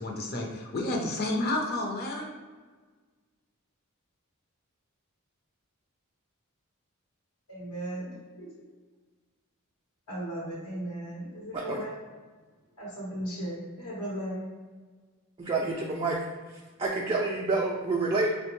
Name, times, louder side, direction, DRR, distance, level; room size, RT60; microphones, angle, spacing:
voice 1, 0.0-2.3, left 2 dB, 45° left, 0 dB, 0.6 m, -30 dB
voice 2, 7.5-8.5 10.1-11.9 12.8-14.5, right 1 dB, 85° left, -6 dB, 1.0 m, -36 dB
voice 3, 15.4-16.2 16.5-18.3, right 3 dB, 25° right, -2 dB, 0.3 m, -28 dB
4.8 x 2.1 x 3.0 m, 1.4 s
head